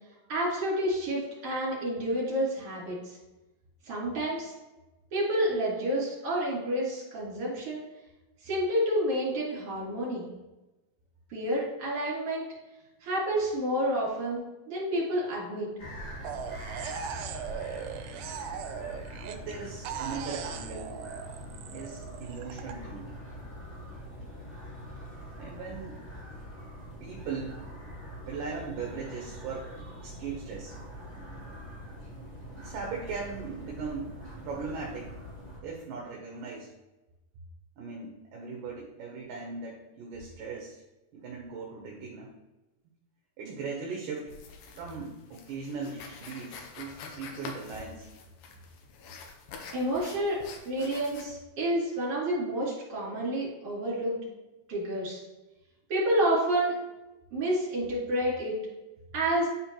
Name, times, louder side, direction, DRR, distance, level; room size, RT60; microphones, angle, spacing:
voice 1, 0.3-3.2 3.8-4.5 5.1-7.8 8.4-10.3 11.3-12.5 13.0-14.4 14.7-15.7 49.7-54.2 54.7-55.2 55.9-56.8 57.3-58.6 59.1-59.5, right 1 dB, 40° right, -6 dB, 3.4 m, -29 dB
sound 1, 15.8-35.6, equal, 30° left, 1.3 m, -43 dB
sound 2, 16.2-19.5 19.9-22.7, right 8 dB, 85° right, 2.5 m, -39 dB
voice 2, 19.2-21.0 21.7-23.2 25.4-26.0 27.0-27.7 28.2-30.7 32.6-34.1 34.4-35.2 35.6-36.7 37.8-40.8 41.1-42.3 43.4-44.4 44.7-48.1, right 4 dB, 70° right, -1 dB, 2.3 m, -39 dB
sound 3, 44.3-51.3, left 5 dB, 75° left, 2.0 m, -46 dB
10.0 x 4.3 x 3.0 m, 1.1 s
omnidirectional pair, 4.4 m